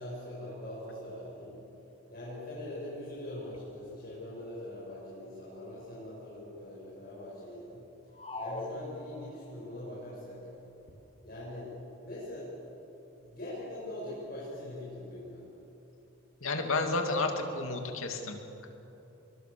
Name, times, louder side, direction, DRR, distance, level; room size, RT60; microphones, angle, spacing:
voice 1, 0.0-1.6 2.1-7.9 8.4-10.5 11.2-11.7 12.0-12.5 13.2-15.4, left 1 dB, 45° left, -8 dB, 7.4 m, -42 dB
sound 1, 8.1-9.6, left 2 dB, 25° left, 1.8 m, -40 dB
voice 2, 16.4-18.7, left 3 dB, 75° left, 4 dB, 2.6 m, -31 dB
24.5 x 23.0 x 6.9 m, 3.0 s
head